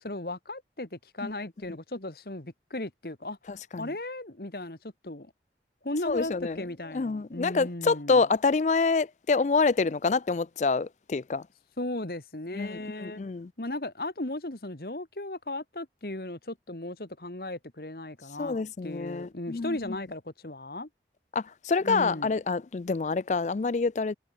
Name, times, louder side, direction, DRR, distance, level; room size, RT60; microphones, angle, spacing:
voice 1, 0.0-3.4 3.8-5.3 5.8-8.2 11.8-13.2 13.6-18.6 18.8-20.9 21.8-22.3, left 1 dB, 55° left, 1.8 m, -36 dB
voice 2, 3.5-3.9 6.1-6.6 6.9-11.4 12.5-13.5 18.4-19.8 21.3-24.1, left 4 dB, 40° left, 0.4 m, -27 dB
head